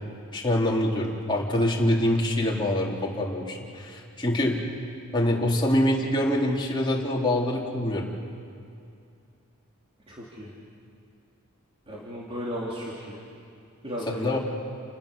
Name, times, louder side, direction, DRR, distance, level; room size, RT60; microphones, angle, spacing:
voice 1, 0.3-4.6 5.1-8.1 14.1-14.4, left 1 dB, 20° left, -3 dB, 3.3 m, -25 dB
voice 2, 10.1-10.5 11.9-13.2 13.8-14.4, equal, 25° right, -5 dB, 3.1 m, -35 dB
29.5 x 18.5 x 7.0 m, 2.5 s
head